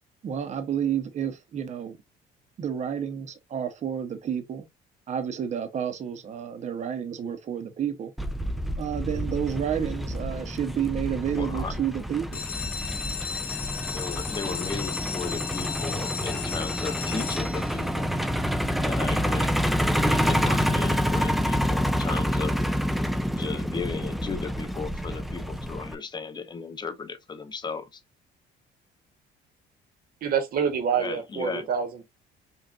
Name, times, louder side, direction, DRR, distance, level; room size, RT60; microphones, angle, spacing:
voice 1, 0.2-2.0 2.6-4.6 5.1-8.1 8.8-12.4, right 8 dB, 45° right, 0.9 m, -30 dB
Truck, 8.2-25.9, equal, ahead, 0.4 m, -28 dB
voice 2, 11.4-11.7 13.9-18.1 18.8-19.5 20.0-22.6 23.4-28.0 30.9-31.7, left 5 dB, 25° left, 0.8 m, -35 dB
sound 1, 12.3-17.9 18.6-19.0 19.4-19.5 19.8-19.9 20.3-20.4, left 7 dB, 65° left, 1.2 m, -35 dB
voice 3, 30.2-32.0, right 7 dB, 60° right, 1.2 m, -27 dB
5.4 x 2.5 x 2.5 m
cardioid pair, 110°, 17 cm